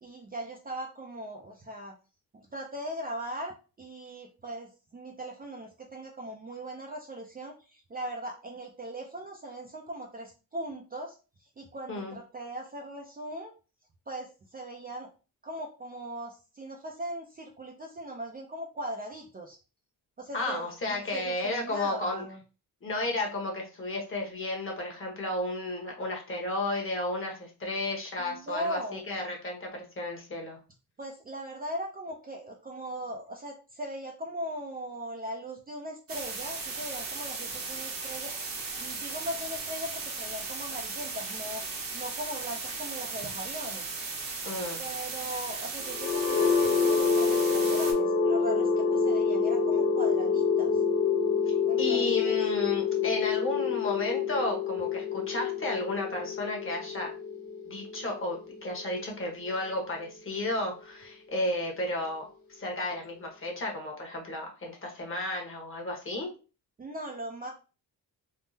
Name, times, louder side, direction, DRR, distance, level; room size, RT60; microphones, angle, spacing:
voice 1, 0.0-1.9 2.3-11.1 11.4-13.5 14.1-15.1 15.4-19.6 20.2-22.4 28.2-29.0 31.0-41.6 41.9-43.9 44.8-50.8 51.7-52.4 66.8-67.5, right 1 dB, 25° right, 1 dB, 0.4 m, -39 dB
voice 2, 20.3-22.2 22.8-30.6 44.4-44.8 51.8-57.1 57.7-66.3, left 2 dB, 35° left, 1 dB, 1.1 m, -33 dB
sound 1, 36.1-47.9, right 4 dB, 60° right, 1.0 m, -36 dB
sound 2, 45.8-59.7, left 5 dB, 80° left, 1.2 m, -27 dB
3.6 x 2.0 x 2.7 m, 0.33 s
cardioid pair, 105°, 37 cm